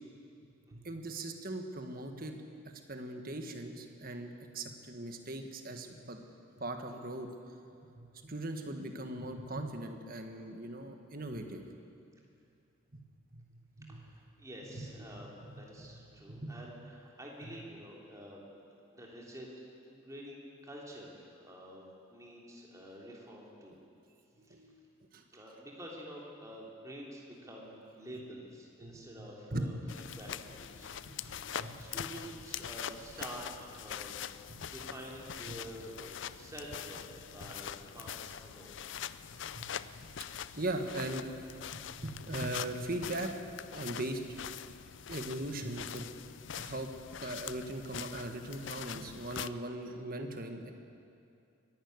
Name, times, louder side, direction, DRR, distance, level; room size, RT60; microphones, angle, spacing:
voice 1, 0.7-2.4 2.9-6.2 6.6-7.3 7.9-11.6 13.3-13.4 13.8-14.0 14.8-14.9 15.5-15.6 16.3-16.6 24.4-24.8 25.1-25.2 28.8-28.9 29.5-29.7 31.1-31.7 35.5-35.6 39.5-39.7 40.6-43.3 43.7-44.3 45.1-46.1 46.6-46.9 47.2-50.7, right 1 dB, 45° right, 5 dB, 1.6 m, -39 dB
voice 2, 13.9-19.5 19.7-23.7 24.5-24.6 25.3-34.2 34.6-38.8, equal, 15° right, -3 dB, 3.3 m, -48 dB
sound 1, 29.9-49.5, left 9 dB, 60° left, 0.5 m, -43 dB
23.0 x 12.0 x 9.6 m, 2.6 s
head